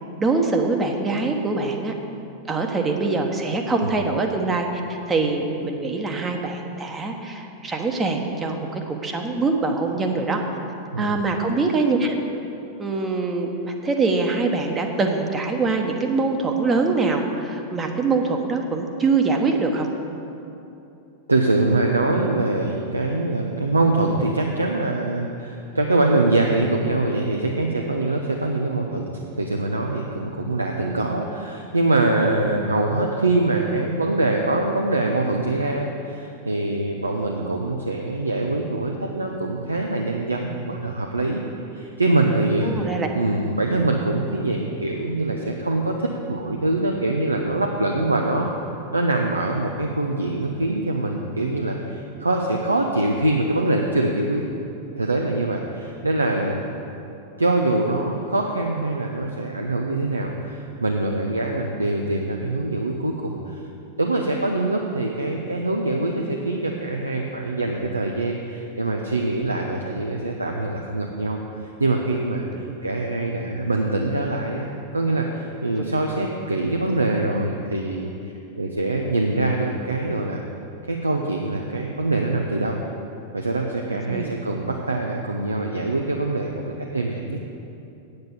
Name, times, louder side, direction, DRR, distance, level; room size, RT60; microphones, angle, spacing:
voice 1, 0.2-1.9 2.5-10.4 11.0-12.2 12.8-19.9 42.6-43.1 72.7-72.8 75.8-75.9 84.1-84.3, right 3 dB, 20° right, 3 dB, 1.1 m, -23 dB
voice 2, 21.3-29.1 29.4-41.4 41.7-48.5 48.9-54.4 55.0-56.7 57.4-63.6 64.0-71.4 71.8-74.7 74.9-80.4 80.8-82.8 83.3-86.6 86.9-87.4, right 2 dB, 80° right, 1 dB, 0.7 m, -24 dB
9.0 x 7.9 x 7.0 m, 2.8 s
figure-of-eight pair, 90°, 0 cm